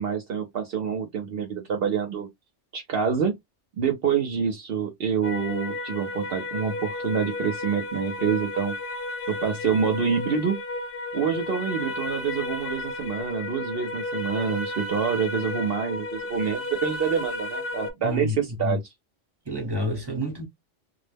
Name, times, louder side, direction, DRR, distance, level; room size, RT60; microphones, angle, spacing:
voice 1, 0.0-2.3 2.7-3.4 3.8-8.8 9.3-10.6 11.1-18.8, right 6 dB, 60° right, 0.7 m, -27 dB
sound 1, 5.2-17.9, left 2 dB, 60° left, 0.7 m, -33 dB
voice 2, 18.0-18.8 19.5-20.5, left 1 dB, 20° right, 0.8 m, -29 dB
2.3 x 2.0 x 3.2 m
omnidirectional pair, 1.2 m